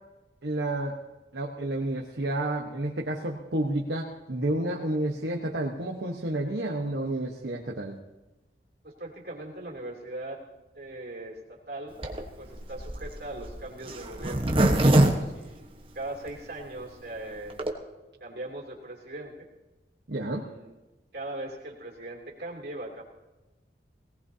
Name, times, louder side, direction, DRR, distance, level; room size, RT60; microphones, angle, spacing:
voice 1, 0.4-1.0 1.3-8.0 20.1-20.5, right 1 dB, 75° right, -1 dB, 1.2 m, -30 dB
voice 2, 8.8-10.4 10.7-11.9 12.4-17.6 18.2-19.5 20.3-20.7 21.1-23.0, right 2 dB, 60° right, -2 dB, 3.0 m, -40 dB
Zipper (clothing), 12.0-16.3 16.8-16.9 17.0-17.1 17.4-17.7, right 1 dB, 30° right, 1.2 m, -24 dB
19.0 x 18.0 x 2.8 m, 1.1 s
head